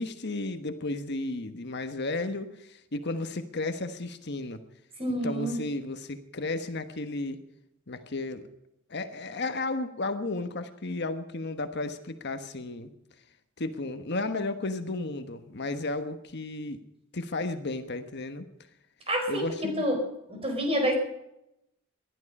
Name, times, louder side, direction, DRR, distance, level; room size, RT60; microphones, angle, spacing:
voice 1, 0.0-4.6 5.1-7.4 7.9-8.5 8.9-12.9 13.6-16.8 17.1-18.5 19.3-19.8, left 2 dB, 55° left, 8 dB, 1.3 m, -33 dB
voice 2, 5.0-5.6 19.1-20.0 20.3-20.9, equal, 30° right, 4 dB, 4.7 m, -28 dB
20.0 x 12.5 x 5.4 m, 0.83 s
head